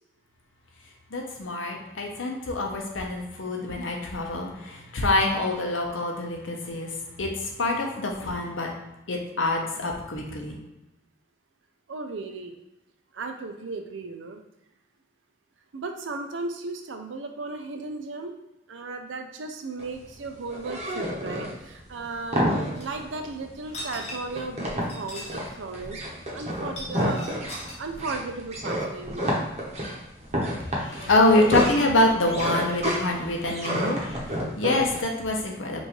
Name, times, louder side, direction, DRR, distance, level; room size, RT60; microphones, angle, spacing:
voice 1, 1.1-6.9 7.2-8.7 9.1-10.6 30.7-35.8, left 2 dB, 85° left, 1 dB, 0.8 m, -25 dB
voice 2, 11.9-12.6 13.1-14.4 15.7-18.4 18.7-26.0 26.3-27.3 27.8-29.4, right 3 dB, 75° right, 5 dB, 0.5 m, -35 dB
sound 1, 19.8-35.0, equal, 35° right, 0.9 m, -30 dB
Kicking Pile of Bottles and Cans, 22.8-22.9 23.6-24.4 24.8-25.4 25.7-25.8 26.6-27.8, left 1 dB, 35° left, 0.9 m, -39 dB
5.3 x 2.6 x 3.1 m, 0.94 s
head